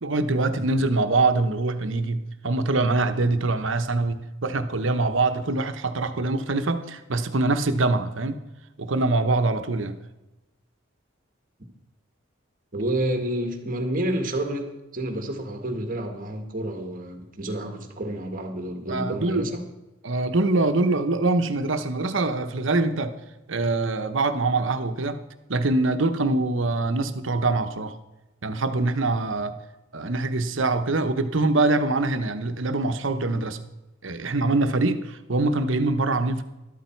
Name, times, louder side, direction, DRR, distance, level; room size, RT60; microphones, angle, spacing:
voice 1, 0.0-8.4 8.8-10.0 18.9-19.5 20.0-23.2 23.5-25.2 25.5-27.9 28.4-29.5 29.9-33.6 34.0-36.4, right 2 dB, 70° right, 8 dB, 1.0 m, -24 dB
voice 2, 12.7-14.7 14.9-19.6, right 1 dB, 40° right, 5 dB, 1.7 m, -29 dB
13.0 x 12.5 x 4.5 m, 1.0 s
head